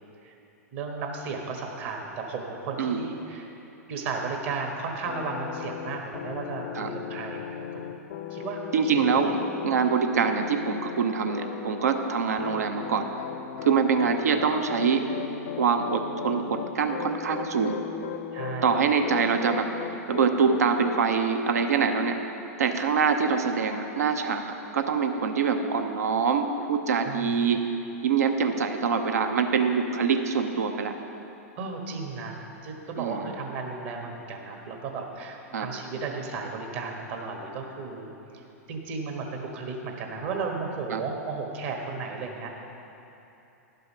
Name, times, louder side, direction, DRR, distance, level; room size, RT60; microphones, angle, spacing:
voice 1, 0.7-3.5 3.9-7.8 8.3-9.1 18.3-18.8 20.4-20.7 27.0-27.4 31.6-38.4 38.7-42.6, right 4 dB, 55° right, 2 dB, 1.4 m, -34 dB
sound 1, 5.0-12.1 12.4-21.0, left 9 dB, 60° left, 0.6 m, -37 dB
voice 2, 8.7-9.4 9.6-13.1 13.6-15.0 15.6-17.8 18.6-19.7 20.1-22.2 22.6-27.6 28.0-30.9 33.0-33.2 35.5-35.7 40.9-41.0, right 6 dB, 80° right, 6 dB, 0.7 m, -24 dB
11.0 x 5.5 x 5.5 m, 3.0 s
hypercardioid pair, 110°, 9 cm